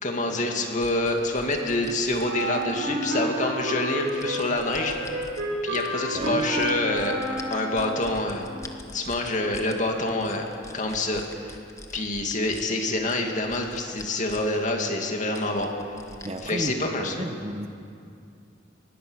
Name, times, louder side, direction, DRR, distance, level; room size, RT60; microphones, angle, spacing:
voice 1, 0.0-4.9 5.6-7.2 7.5-8.5 8.9-10.4 10.7-11.6 11.9-15.7 16.4-17.1, left 2 dB, 40° left, 2 dB, 2.4 m, -26 dB
sound 1, 0.8-2.9 3.6-5.4 5.7-9.7 10.1-12.6 13.1-14.6 14.8-14.9 15.3-16.7, left 2 dB, 15° left, 1.3 m, -45 dB
Wind instrument woodwind instrument, 2.2-8.2, right 1 dB, 75° right, 4.9 m, -30 dB
voice 2, 6.1-6.5 16.2-17.7, right 1 dB, 35° right, 5 dB, 1.3 m, -33 dB
23.0 x 20.0 x 6.5 m, 2.4 s
head